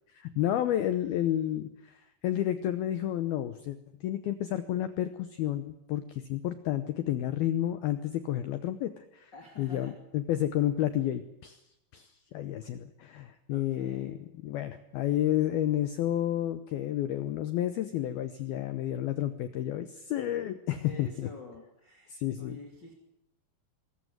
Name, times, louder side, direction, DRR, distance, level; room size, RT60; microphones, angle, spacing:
voice 1, 0.2-9.3 9.6-11.6 11.9-14.2 14.4-21.3 22.1-22.6, left 12 dB, 80° left, 11 dB, 2.2 m, -31 dB
voice 2, 9.3-10.0 13.5-14.1 20.8-22.9, left 3 dB, 30° left, 3 dB, 2.3 m, -48 dB
24.0 x 14.0 x 9.5 m, 0.87 s
omnidirectional pair, 5.7 m